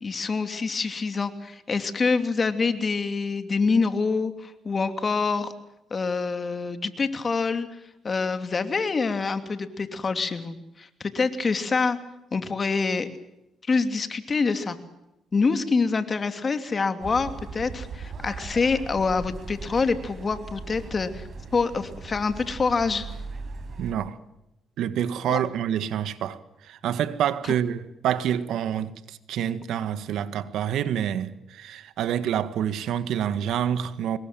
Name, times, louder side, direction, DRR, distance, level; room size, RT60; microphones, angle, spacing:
voice 1, 0.0-5.5 5.9-7.7 8.0-12.0 12.3-13.1 13.7-14.8 15.3-21.2 21.5-23.0 25.3-25.4, left 4 dB, 35° left, 2.8 m, -26 dB
sound 1, 17.0-23.9, right 4 dB, 45° right, 5.8 m, -39 dB
voice 2, 23.8-24.2 24.8-34.2, right 9 dB, 80° right, 1.7 m, -27 dB
26.0 x 21.5 x 7.6 m
cardioid pair, 90°, 0 cm